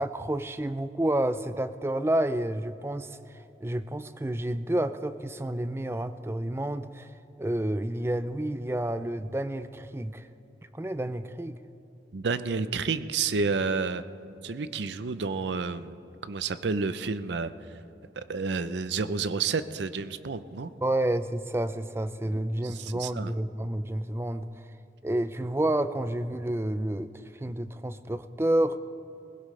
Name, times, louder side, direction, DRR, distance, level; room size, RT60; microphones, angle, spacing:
voice 1, 0.0-7.1 7.4-10.3 10.7-11.6 20.8-24.6 25.0-28.8, right 1 dB, 15° right, 12 dB, 0.4 m, -30 dB
voice 2, 12.1-14.0 14.4-16.0 16.2-17.5 18.2-20.7 22.6-23.3, right 4 dB, 80° right, 13 dB, 0.6 m, -30 dB
20.0 x 16.5 x 3.3 m, 2.9 s
head